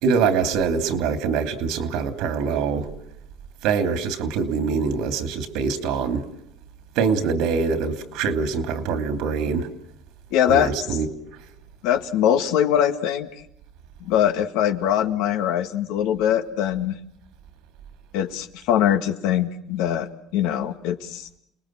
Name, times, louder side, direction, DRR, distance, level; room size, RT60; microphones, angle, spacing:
voice 1, 0.0-2.9 3.6-6.3 6.9-9.7 10.5-11.1, right 5 dB, 80° right, 9 dB, 2.8 m, -24 dB
voice 2, 10.3-10.7 11.8-13.3 14.0-17.0 18.1-21.3, left 10 dB, 80° left, 8 dB, 1.8 m, -22 dB
30.0 x 19.5 x 7.6 m, 0.76 s
supercardioid pair, 100°, 0 cm